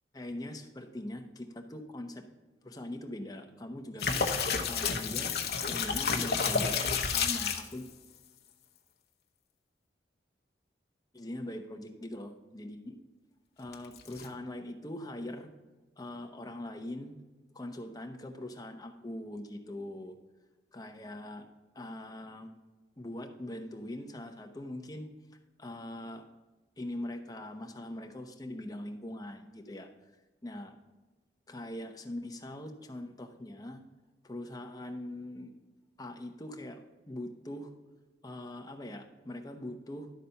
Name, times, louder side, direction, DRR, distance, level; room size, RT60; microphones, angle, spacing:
voice 1, 0.1-2.2 2.6-4.2 4.7-5.3 5.6-7.9 11.1-12.9 13.6-15.5 16.0-17.1 17.5-20.1 20.7-21.5 21.7-22.5 23.0-25.1 25.6-26.2 26.8-29.9 30.4-30.7 31.5-33.8 34.2-35.5 36.0-36.8 37.1-37.7 38.2-40.1, left 1 dB, 20° left, 4 dB, 0.8 m, -42 dB
sound 1, 4.0-7.7 13.7-14.3, left 5 dB, 60° left, 0.9 m, -30 dB
11.5 x 4.1 x 5.6 m, 1.2 s
head